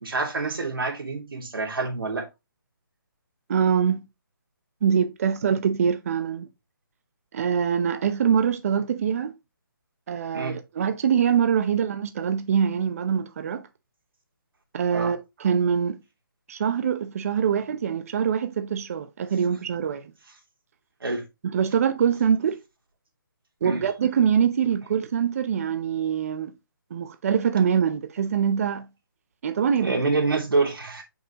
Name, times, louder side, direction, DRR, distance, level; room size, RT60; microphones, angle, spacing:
voice 1, 0.0-2.3 10.3-10.6 14.9-15.1 21.0-21.2 23.6-23.8 29.8-31.0, right 3 dB, 85° right, 2.8 m, -26 dB
voice 2, 3.5-4.0 4.8-6.5 7.3-9.3 10.1-13.6 14.7-16.0 16.5-20.1 21.5-22.6 23.6-26.5 26.9-28.9 29.4-30.0, right 7 dB, 40° right, 0.7 m, -24 dB
6.2 x 5.5 x 2.9 m
hypercardioid pair, 160°, 12 cm